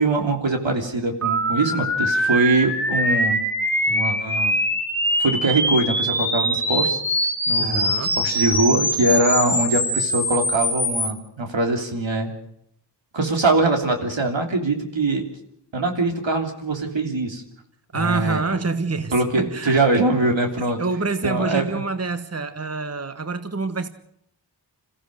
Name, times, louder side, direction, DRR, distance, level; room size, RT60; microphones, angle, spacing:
voice 1, 0.0-3.4 3.9-4.5 5.2-7.0 7.5-12.3 13.1-15.2 15.7-17.4 17.9-18.4 19.1-20.8 21.2-21.8, right 2 dB, 90° right, 3 dB, 3.3 m, -22 dB
sound 1, 1.2-11.1, equal, 5° left, 2.7 m, -23 dB
voice 2, 7.6-8.2 17.9-19.7 20.8-23.9, right 3 dB, 35° right, 10 dB, 1.3 m, -26 dB
27.0 x 15.5 x 6.4 m, 0.74 s
wide cardioid pair, 65°, 44 cm